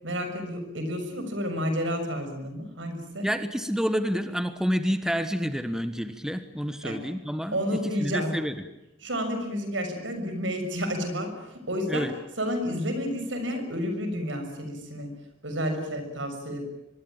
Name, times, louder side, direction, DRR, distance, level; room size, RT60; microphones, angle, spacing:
voice 1, 0.0-3.3 6.8-7.0 7.5-8.4 9.0-12.1 12.4-15.1 15.4-16.6, equal, 80° right, 7 dB, 6.5 m, -30 dB
voice 2, 3.2-8.5 11.9-12.1, equal, 5° right, 9 dB, 1.4 m, -29 dB
24.5 x 21.5 x 9.0 m, 0.93 s
head